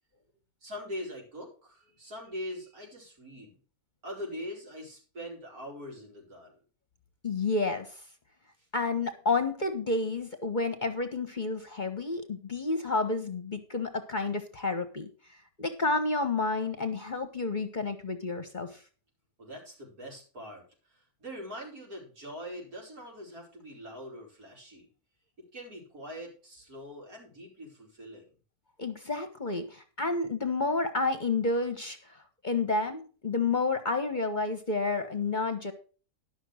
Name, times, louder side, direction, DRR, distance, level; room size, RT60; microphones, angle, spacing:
voice 1, 0.6-3.5 4.0-6.5 19.4-20.6 20.9-24.9 25.5-28.2, equal, 80° right, -2 dB, 5.0 m, -42 dB
voice 2, 7.2-7.9 8.7-15.1 15.6-18.8 28.8-32.0 32.4-35.7, left 3 dB, 35° left, 8 dB, 1.0 m, -30 dB
12.0 x 6.1 x 6.3 m, 0.38 s
omnidirectional pair, 1.6 m